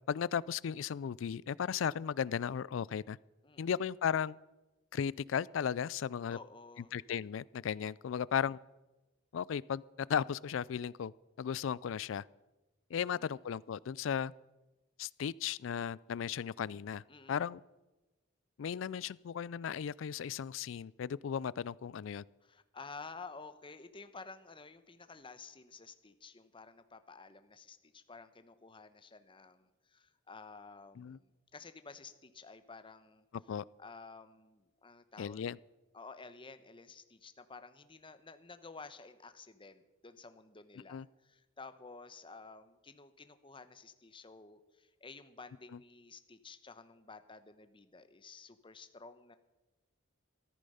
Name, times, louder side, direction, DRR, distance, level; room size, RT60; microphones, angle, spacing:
voice 1, 0.1-3.2 3.6-4.4 4.9-6.4 6.9-8.6 9.3-11.1 11.4-12.2 12.9-14.3 15.0-17.0 17.3-17.6 18.6-22.2 31.0-31.2 33.5-33.6 35.2-35.6 40.9-41.1, left 8 dB, 70° left, 22 dB, 0.4 m, -35 dB
voice 2, 3.4-3.8 6.3-6.9 12.9-13.4 17.1-17.4 22.4-33.2 33.8-35.5 35.9-49.4, left 4 dB, 25° left, 10 dB, 0.9 m, -52 dB
14.5 x 13.5 x 5.5 m, 1.1 s
head